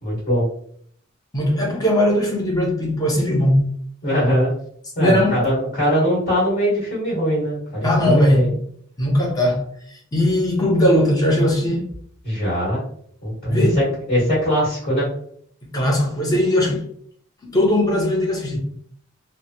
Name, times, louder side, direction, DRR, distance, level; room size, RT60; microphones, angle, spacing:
voice 1, 0.0-0.4 4.0-4.5 4.9-8.5 12.2-12.8 13.2-15.1, equal, 45° left, 1.5 m, -21 dB
voice 2, 1.3-3.7 5.0-5.5 7.8-8.5 9.0-11.9 13.5-13.9 15.6-16.9 17.5-18.6, left 1 dB, 20° left, 0.7 m, -19 dB
3.0 x 2.2 x 2.7 m
head